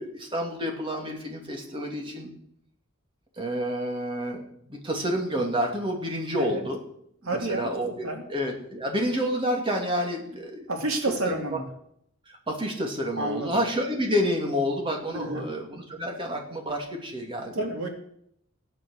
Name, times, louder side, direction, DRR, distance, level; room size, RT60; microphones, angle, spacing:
voice 1, 0.0-2.3 3.4-6.8 7.2-10.7 11.2-11.6 12.3-17.6, equal, 25° right, 1 dB, 2.7 m, -29 dB
voice 2, 7.2-7.7 8.0-8.2 10.7-11.7 13.1-13.6 15.1-15.5 17.5-17.9, right 2 dB, 85° right, 3 dB, 2.8 m, -29 dB
16.5 x 9.9 x 6.5 m, 0.71 s
head